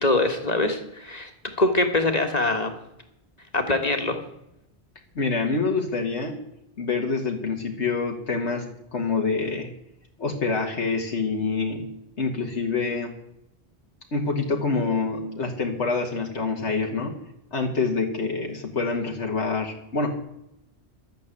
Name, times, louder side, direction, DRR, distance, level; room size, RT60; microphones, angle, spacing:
voice 1, 0.0-1.3 1.6-2.7 3.5-4.2, left 2 dB, 35° left, 5 dB, 1.8 m, -23 dB
voice 2, 5.2-6.4 6.8-9.7 10.2-11.8 12.2-13.2 14.1-17.1 17.5-20.2, left 4 dB, 75° left, 1 dB, 1.9 m, -26 dB
12.0 x 8.9 x 8.3 m, 0.83 s
omnidirectional pair, 1.2 m